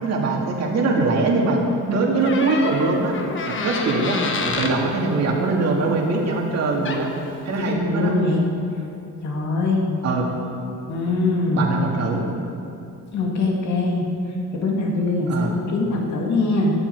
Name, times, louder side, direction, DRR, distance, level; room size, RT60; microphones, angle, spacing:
voice 1, 0.0-3.1 3.5-4.2 4.4-7.1 7.5-8.1 10.0-10.3 11.5-12.3 15.3-15.6, right 3 dB, 55° right, -1 dB, 2.3 m, -22 dB
Door, 2.2-4.8 6.6-6.7 6.8-7.2, left 3 dB, 40° left, 1.3 m, -27 dB
voice 2, 7.6-8.4 9.2-9.9 10.9-11.7 13.1-14.0 14.5-15.3 15.7-16.7, left 3 dB, 60° left, -1 dB, 2.5 m, -22 dB
16.5 x 12.0 x 4.7 m, 2.7 s
cardioid pair, 165°, 32 cm